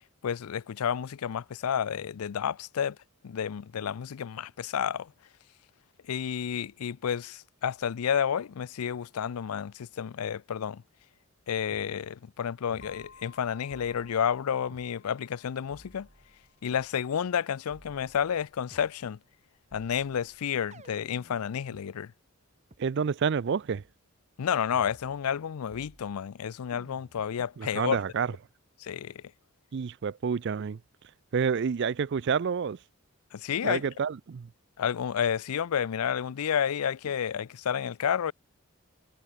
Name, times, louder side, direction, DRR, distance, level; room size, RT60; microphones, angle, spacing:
voice 1, 0.2-3.0 3.2-5.1 6.1-10.8 11.5-16.1 16.6-19.2 19.7-22.1 24.4-28.0 28.8-29.2 33.3-33.8 34.8-38.3, left 8 dB, 85° left, 0.4 m, -30 dB
sound 1, 11.7-11.9 12.7-13.4 13.7-14.9 15.7-16.9 17.7-18.9 19.7-21.9 22.7-22.8 23.7-23.9 24.7-25.4 25.7-26.3 26.7-27.3, right 1 dB, 30° right, 1.6 m, -56 dB
sound 2, 12.8-20.6, left 4 dB, 55° left, 6.0 m, -59 dB
voice 2, 22.8-23.8 27.6-28.3 29.7-30.8 31.3-32.8 33.6-34.5, right 6 dB, 50° right, 0.4 m, -29 dB
head